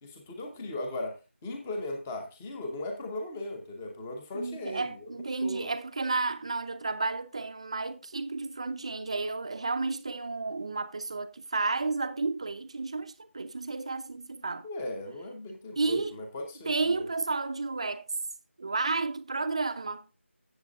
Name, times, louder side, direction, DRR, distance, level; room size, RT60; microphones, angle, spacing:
voice 1, 0.0-5.1 5.4-5.7 14.6-17.1, left 1 dB, 5° left, 0.8 m, -37 dB
voice 2, 4.3-14.7 15.8-16.1 16.7-18.1 18.6-20.0, right 3 dB, 25° right, 0.6 m, -32 dB
15.5 x 7.3 x 2.4 m
figure-of-eight pair, 175°, 7 cm